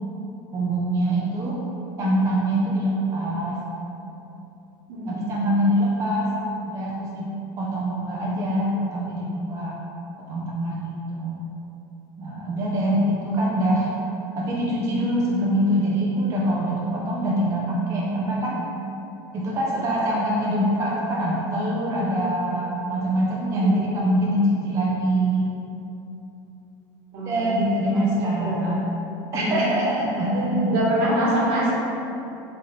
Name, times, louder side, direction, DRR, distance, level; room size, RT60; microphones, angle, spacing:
voice 1, 0.5-1.6 2.0-3.6 5.1-6.3 6.7-7.3 7.6-9.7 10.3-11.4 12.2-13.9 14.4-18.6 19.3-25.5 27.1-28.8 29.3-30.8, right 1 dB, 30° right, -4 dB, 0.5 m, -24 dB
voice 2, 4.9-5.4 23.5-23.8 27.1-27.4 27.9-28.7 29.4-29.6 30.3-31.7, equal, 75° right, -7 dB, 1.2 m, -25 dB
3.7 x 2.9 x 3.1 m, 2.9 s
supercardioid pair, 130°, 11 cm